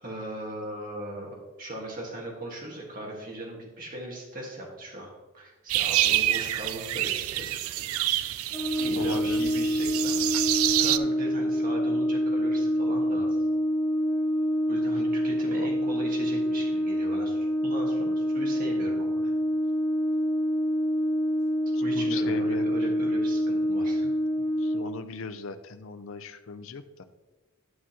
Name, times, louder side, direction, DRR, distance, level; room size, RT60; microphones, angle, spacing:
voice 1, 0.0-7.9 8.8-10.2 10.8-13.4 14.7-19.3 21.8-24.1, right 1 dB, 40° right, -2 dB, 1.6 m, -38 dB
sound 1, 5.7-11.0, right 14 dB, 70° right, 0.3 m, -27 dB
Brass instrument, 8.5-24.9, equal, 10° left, 0.6 m, -26 dB
voice 2, 8.9-9.5 15.5-15.7 21.9-22.8 24.0-24.1 24.4-27.0, left 4 dB, 65° left, 10 dB, 0.5 m, -38 dB
11.0 x 6.1 x 2.9 m, 1.1 s
head